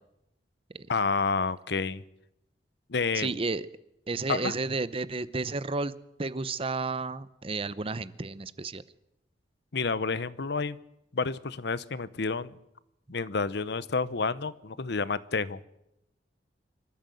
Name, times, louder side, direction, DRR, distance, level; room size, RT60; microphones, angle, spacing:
voice 1, 0.9-2.0 2.9-3.4 4.3-4.5 9.7-10.8 11.1-12.6 13.1-15.6, left 4 dB, 65° left, 16 dB, 0.8 m, -29 dB
voice 2, 3.1-3.7 4.1-5.9 6.2-8.8, right 3 dB, 30° right, 16 dB, 0.7 m, -32 dB
25.5 x 13.0 x 7.8 m, 0.85 s
head